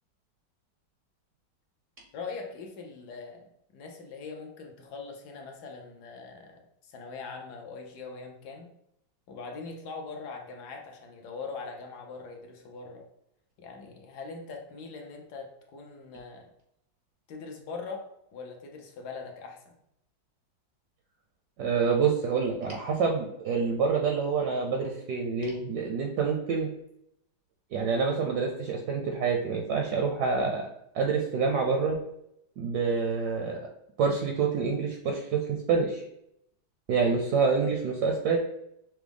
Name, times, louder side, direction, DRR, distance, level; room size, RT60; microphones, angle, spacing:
voice 1, 2.1-8.7 9.3-13.0 13.6-16.5 17.3-18.0 18.3-19.7, left 4 dB, 70° left, 2 dB, 1.0 m, -42 dB
voice 2, 21.6-26.7 27.7-30.7 30.9-32.0 32.6-33.6 34.0-36.0 36.9-38.4, right 5 dB, 75° right, 2 dB, 1.0 m, -27 dB
5.9 x 2.0 x 3.4 m, 0.78 s
omnidirectional pair, 2.1 m